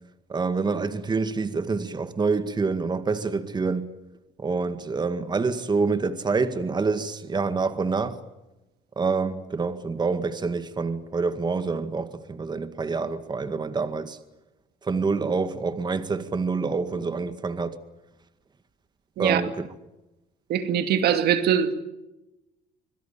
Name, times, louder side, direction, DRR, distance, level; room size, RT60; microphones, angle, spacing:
voice 1, 0.3-3.9 4.4-8.2 9.0-14.2 14.8-17.8 19.2-19.7, right 4 dB, 25° right, 1.9 m, -27 dB
voice 2, 20.5-21.7, right 9 dB, 70° right, 2.6 m, -22 dB
25.5 x 23.5 x 8.7 m
cardioid pair, 110°, 17 cm